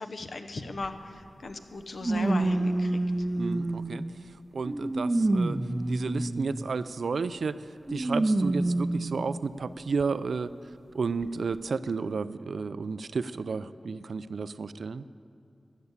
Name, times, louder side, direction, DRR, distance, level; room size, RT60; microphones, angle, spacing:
voice 1, 0.0-3.3, left 3 dB, 60° left, 8 dB, 1.0 m, -38 dB
sound 1, 0.8-0.9 2.0-4.1 4.6-6.7 7.9-9.3 10.0-10.1 11.2-11.3, right 2 dB, 25° right, 0.6 m, -27 dB
voice 2, 3.4-5.6 5.9-10.5 10.9-15.1, right 4 dB, 80° right, 14 dB, 0.4 m, -32 dB
14.0 x 10.0 x 8.1 m, 2.6 s
wide cardioid pair, 95°, 0 cm